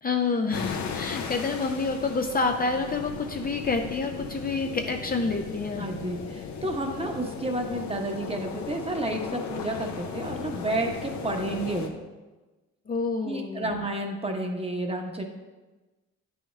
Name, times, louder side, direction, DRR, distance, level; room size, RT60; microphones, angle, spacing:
voice 1, 0.0-5.8 12.9-13.7, left 4 dB, 30° left, 4 dB, 0.6 m, -28 dB
sound 1, 0.5-11.9, left 6 dB, 70° left, 0.9 m, -37 dB
voice 2, 5.8-12.0 13.2-15.2, right 1 dB, 20° right, 3 dB, 1.0 m, -31 dB
9.2 x 5.6 x 3.3 m, 1.2 s
cardioid pair, 90°, 30 cm